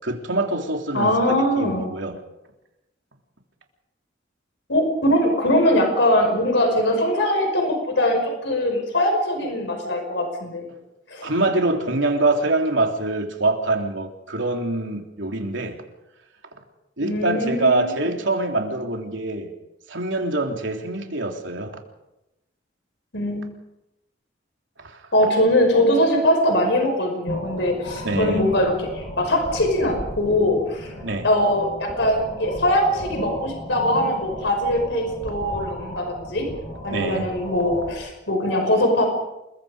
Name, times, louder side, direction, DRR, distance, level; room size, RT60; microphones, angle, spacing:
voice 1, 0.0-2.2 11.2-15.8 17.0-19.5 19.9-21.8 24.8-25.1 28.0-28.5 31.0-31.3 36.9-37.3, right 2 dB, 75° right, 3 dB, 3.5 m, -24 dB
voice 2, 0.9-1.9 4.7-10.7 11.1-11.3 17.0-17.9 23.1-23.4 25.1-30.9 31.2-36.4 36.8-39.1, left 1 dB, 65° left, 4 dB, 5.6 m, -21 dB
sound 1, 27.3-37.9, equal, 40° left, 7.1 m, -33 dB
28.5 x 22.0 x 5.2 m, 0.92 s
head